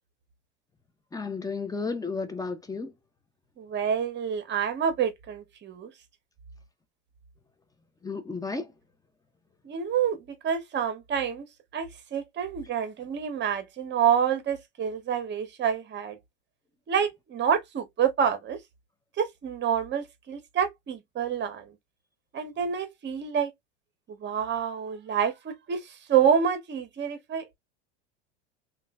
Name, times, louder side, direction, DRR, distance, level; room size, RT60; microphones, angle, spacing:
voice 1, 1.1-2.9 8.0-8.7, left 4 dB, 10° left, 0.6 m, -33 dB
voice 2, 3.6-5.9 9.6-11.4 11.7-16.2 16.9-18.6 19.2-21.7 22.3-23.5 24.1-27.6, right 8 dB, 30° right, 0.8 m, -28 dB
3.0 x 2.3 x 2.3 m
hypercardioid pair, 95°, 34 cm